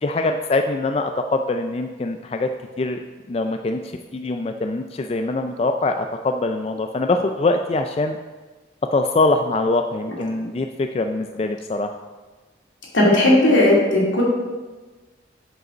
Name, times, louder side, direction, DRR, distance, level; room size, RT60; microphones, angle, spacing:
voice 1, 0.0-2.5 2.8-3.0 3.3-8.2 8.9-11.9, left 2 dB, 30° left, 6 dB, 0.3 m, -23 dB
voice 2, 12.9-14.2, left 1 dB, 85° left, -4 dB, 2.6 m, -16 dB
7.9 x 5.1 x 6.0 m, 1.3 s
head